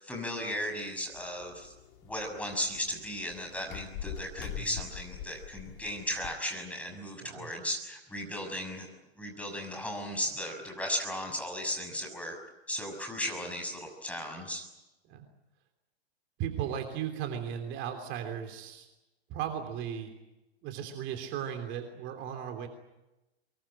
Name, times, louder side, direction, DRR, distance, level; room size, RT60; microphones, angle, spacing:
voice 1, 0.0-1.7 2.0-8.9 9.2-12.4 12.7-14.6, left 1 dB, 5° left, 3 dB, 6.3 m, -36 dB
sound 1, 1.1-6.4, left 9 dB, 50° left, 3.6 m, -44 dB
voice 2, 16.4-18.9 19.3-20.1 20.6-22.7, right 9 dB, 35° right, 5 dB, 3.2 m, -36 dB
24.5 x 22.5 x 9.0 m, 1.0 s
hypercardioid pair, 115°, 32 cm